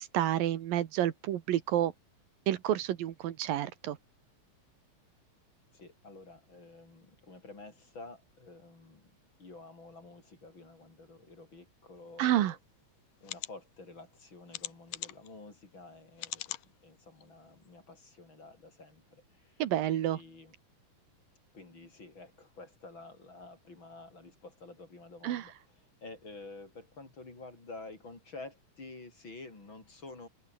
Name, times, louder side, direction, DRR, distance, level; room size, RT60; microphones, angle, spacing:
voice 1, 0.0-1.9 2.5-4.0 12.2-12.5 19.6-20.2 25.2-25.4, right 12 dB, 80° right, 3.1 m, -29 dB
voice 2, 5.7-9.1 9.4-12.6 13.2-19.6 19.9-20.5 21.5-30.3, left 3 dB, 35° left, 5.3 m, -50 dB
sound 1, 12.5-12.6 13.2-13.5 14.5-15.3 16.2-16.7 17.2-17.3 17.7-17.8, left 15 dB, 75° left, 2.6 m, -40 dB
omnidirectional pair, 4.1 m